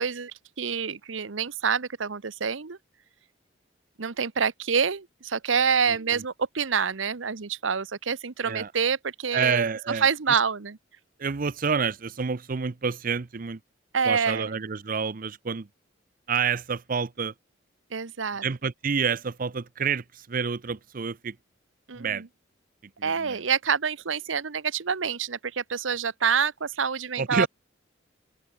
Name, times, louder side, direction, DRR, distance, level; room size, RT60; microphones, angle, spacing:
voice 1, 0.0-2.8 4.0-9.6 10.0-10.8 13.9-14.6 17.9-18.4 21.9-22.3 23.0-27.5, right 6 dB, 80° right, 0.9 m, -27 dB
voice 2, 9.3-10.4 11.2-13.6 14.0-15.7 16.3-17.3 18.4-21.4 21.9-22.2 23.0-23.4 27.1-27.5, right 5 dB, 45° right, 0.6 m, -28 dB
open air
head